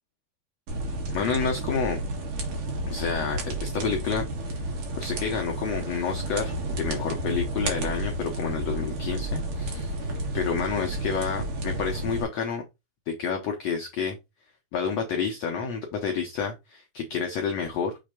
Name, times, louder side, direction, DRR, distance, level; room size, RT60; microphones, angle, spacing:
sound 1, 0.7-12.2, right 1 dB, 60° right, 3.2 m, -31 dB
voice 1, 1.1-2.0 2.9-4.3 5.0-9.9 10.3-12.6 13.1-14.2 14.7-18.0, left 6 dB, 80° left, 1.5 m, -29 dB
6.4 x 3.3 x 5.1 m
omnidirectional pair, 4.4 m